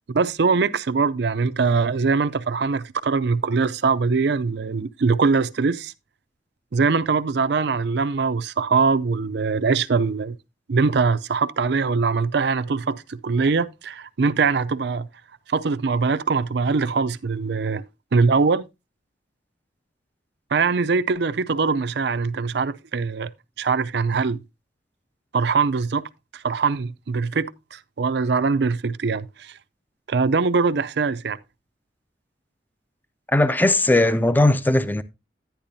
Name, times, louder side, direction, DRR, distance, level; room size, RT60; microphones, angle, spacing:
voice 1, 0.1-5.9 6.7-10.4 10.7-15.1 15.5-17.8 18.1-18.7 20.5-23.3 23.6-24.4 25.3-26.0 26.3-29.6 30.1-31.4, right 4 dB, 65° right, 0.5 m, -22 dB
voice 2, 33.3-35.0, left 2 dB, 10° left, 0.5 m, -18 dB
10.5 x 10.5 x 2.7 m
head